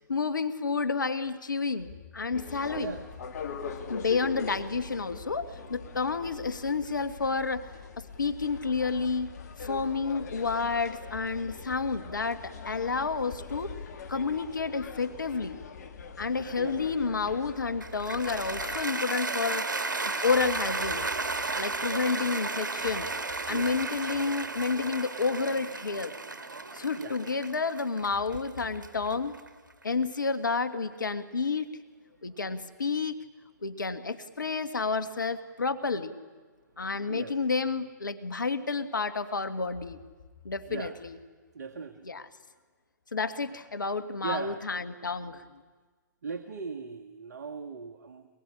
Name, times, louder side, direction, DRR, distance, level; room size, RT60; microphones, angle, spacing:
voice 1, 0.1-3.0 3.9-7.7 8.0-13.8 14.1-15.6 16.2-19.7 20.2-21.1 21.5-23.1 23.5-26.1 26.7-29.3 29.8-31.7 32.2-33.2 33.6-36.1 36.8-40.0 40.4-41.2 42.0-42.3 43.1-45.4, left 4 dB, 80° left, 11 dB, 1.8 m, -30 dB
sound 1, 2.3-18.8, left 5 dB, 55° left, 2.9 m, -42 dB
voice 2, 2.7-3.0 16.4-16.8 23.5-23.7 27.0-27.2 32.3-32.4 37.1-37.4 40.7-40.9 41.5-42.1 44.2-44.7 46.2-48.3, right 5 dB, 55° right, 5 dB, 1.7 m, -39 dB
Cheering / Applause, 17.8-30.0, right 3 dB, 75° right, 2.2 m, -34 dB
23.5 x 22.0 x 9.9 m, 1.4 s
figure-of-eight pair, 120°, 10 cm